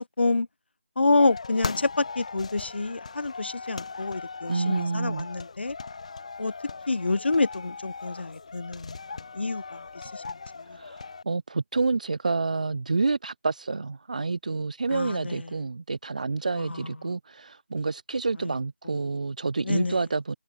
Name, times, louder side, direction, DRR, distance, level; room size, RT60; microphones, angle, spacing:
voice 1, 1.0-5.8 6.4-6.5 6.9-9.0 9.3-10.8 14.9-15.5 16.6-16.9 19.6-20.0, left 3 dB, 55° left, 0.7 m, -28 dB
sound 1, 1.2-11.2, left 4 dB, 30° left, 1.0 m, -38 dB
voice 2, 4.5-5.3 10.7-20.3, right 3 dB, 35° right, 0.8 m, -28 dB
figure-of-eight pair, 175°, 7 cm